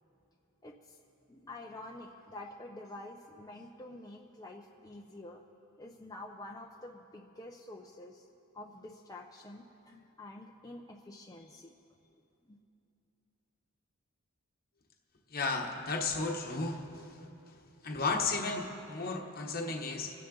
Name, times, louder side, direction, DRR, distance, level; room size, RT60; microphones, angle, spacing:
voice 1, 0.6-1.0 1.3-5.4 5.8-8.3 8.5-11.7 12.5-12.6, left 2 dB, 15° left, 0 dB, 0.6 m, -48 dB
voice 2, 15.3-17.1 17.8-20.1, left 3 dB, 40° left, 1 dB, 1.1 m, -34 dB
26.0 x 9.7 x 3.9 m, 2.8 s
head